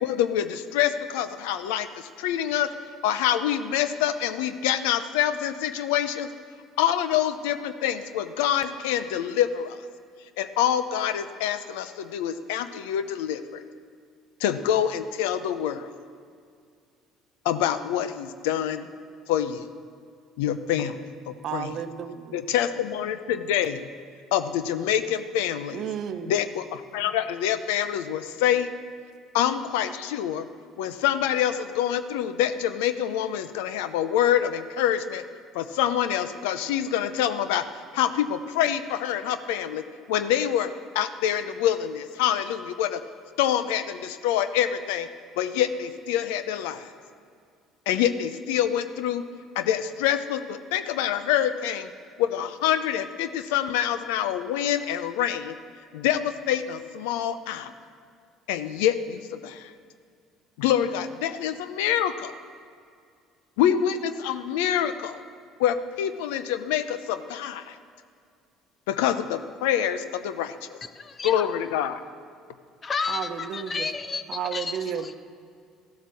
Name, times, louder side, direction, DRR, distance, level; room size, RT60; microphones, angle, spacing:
voice 1, 0.0-2.7 3.0-6.3 6.8-9.8 10.4-13.6 14.4-15.9 17.4-18.9 19.3-19.7 20.4-21.7 22.3-23.9 24.3-25.8 26.3-28.7 29.3-30.5 30.8-35.2 35.5-37.6 37.9-39.8 40.1-43.0 43.4-45.1 45.4-46.9 47.9-49.2 49.6-51.9 52.2-55.6 55.9-57.7 58.5-59.7 60.6-62.3 63.6-65.2 65.6-67.8 68.9-70.6 71.2-72.0, left 10 dB, 85° left, 12 dB, 0.5 m, -26 dB
voice 2, 21.4-22.4 25.7-26.3 73.1-73.9 74.3-75.1, right 8 dB, 60° right, 9 dB, 0.8 m, -32 dB
voice 3, 70.9-71.5 72.8-75.1, left 5 dB, 35° left, 11 dB, 0.9 m, -31 dB
14.0 x 8.0 x 6.3 m, 2.2 s
supercardioid pair, 75°, 0 cm